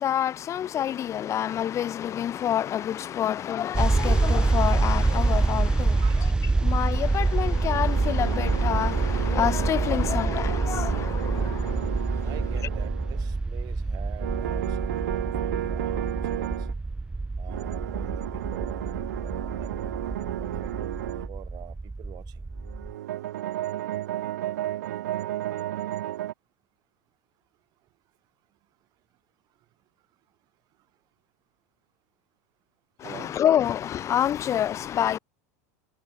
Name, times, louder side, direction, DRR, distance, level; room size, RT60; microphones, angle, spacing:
voice 1, 0.0-5.9 6.6-11.1 33.1-35.2, left 10 dB, 35° left, 1.0 m, -27 dB
sound 1, 3.7-22.9, right 3 dB, 10° right, 0.5 m, -26 dB
sound 2, 7.2-13.4 14.2-16.7 17.5-21.3 22.6-26.3, right 13 dB, 85° right, 2.7 m, -33 dB
voice 2, 12.2-16.7 17.4-20.0 20.4-20.7 21.3-22.5 33.0-33.4, right 17 dB, 50° right, 3.7 m, -46 dB
supercardioid pair, 110°, 9 cm